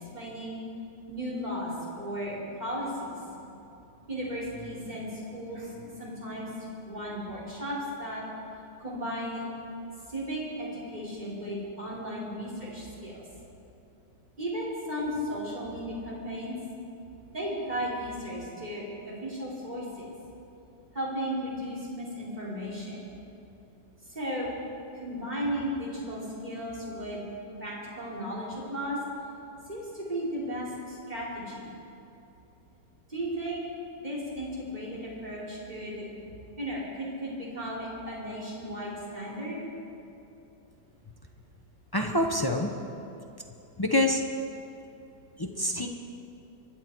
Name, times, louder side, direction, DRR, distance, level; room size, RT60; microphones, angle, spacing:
voice 1, 0.1-0.6 1.1-3.6 4.1-6.5 6.8-8.2 8.8-9.4 10.1-13.2 14.4-16.5 17.3-19.8 20.9-23.1 24.1-24.5 24.9-27.3 27.6-29.0 29.7-31.7 33.1-33.6 34.0-36.1 36.6-39.6, equal, 25° right, -6 dB, 3.9 m, -35 dB
voice 2, 41.9-42.7 43.8-44.2 45.4-45.9, left 1 dB, 25° left, 2 dB, 0.5 m, -26 dB
25.0 x 11.5 x 4.6 m, 2.8 s
omnidirectional pair, 1.9 m